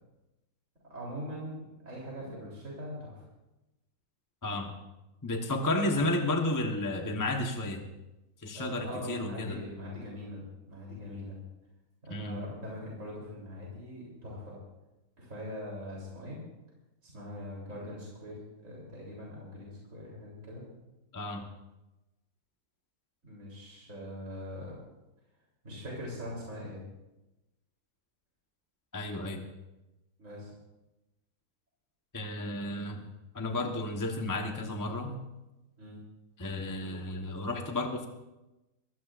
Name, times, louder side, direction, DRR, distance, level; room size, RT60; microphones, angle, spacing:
voice 1, 0.9-3.2 8.5-11.4 12.0-14.6 15.2-16.4 17.0-20.6 23.2-24.8 25.6-26.8 30.2-30.6 35.8-36.0, left 1 dB, 50° right, -4 dB, 3.9 m, -42 dB
voice 2, 4.4-4.8 5.2-7.8 8.4-9.6 12.1-12.4 21.1-21.5 28.9-29.4 32.1-33.0 33.3-35.2 36.4-38.1, left 2 dB, 15° left, 2 dB, 1.0 m, -32 dB
23.5 x 16.5 x 2.5 m, 1.0 s
omnidirectional pair, 1.7 m